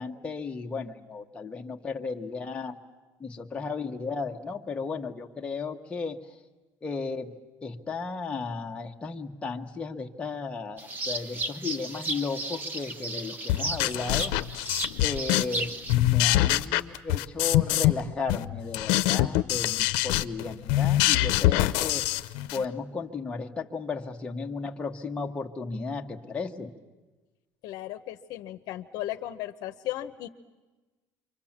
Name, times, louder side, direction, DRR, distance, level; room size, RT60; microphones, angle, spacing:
voice 1, 0.0-2.8 3.2-6.2 6.8-7.3 7.6-14.3 15.0-22.0 22.5-26.7, left 4 dB, 15° left, 1 dB, 1.2 m, -34 dB
sound 1, 10.8-15.9, right 2 dB, 25° right, 1.2 m, -34 dB
sound 2, 13.5-15.6 15.9-18.0 18.3-22.6, left 16 dB, 90° left, 0.8 m, -24 dB
voice 2, 27.6-30.3, left 14 dB, 60° left, 8 dB, 0.9 m, -36 dB
28.5 x 24.5 x 7.4 m, 1.2 s
cardioid pair, 155°, 8 cm